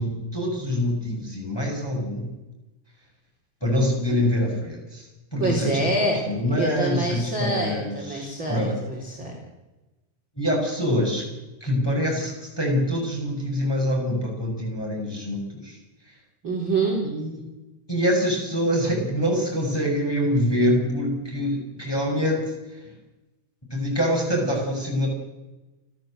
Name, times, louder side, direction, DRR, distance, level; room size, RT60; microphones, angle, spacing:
voice 1, 0.0-2.3 3.6-5.1 5.3-5.7 6.2-8.8 10.4-11.2 11.6-15.8 17.0-17.4 17.9-22.5 23.7-25.1, equal, 5° left, -1 dB, 6.0 m, -25 dB
voice 2, 5.4-6.2 6.5-9.3 16.4-17.0, right 2 dB, 25° right, -1 dB, 4.1 m, -26 dB
29.5 x 13.5 x 8.0 m, 1.1 s
omnidirectional pair, 5.8 m